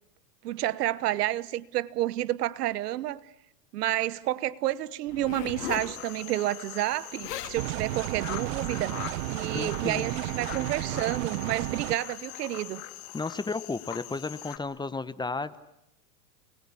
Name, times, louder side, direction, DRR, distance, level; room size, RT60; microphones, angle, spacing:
voice 1, 0.4-3.2 3.7-12.8, right 14 dB, 80° right, 1.3 m, -30 dB
Zipper (clothing), 5.1-5.9 6.9-7.0 7.2-7.6 8.3-8.5, left 10 dB, 85° left, 3.6 m, -37 dB
sound 1, 5.6-14.6, left 14 dB, 60° left, 2.6 m, -42 dB
sound 2, 7.6-12.0, right 18 dB, 60° right, 1.1 m, -33 dB
voice 2, 9.5-10.1 13.1-15.6, left 3 dB, 10° left, 1.0 m, -33 dB
29.5 x 21.5 x 8.6 m
supercardioid pair, 130°, 47 cm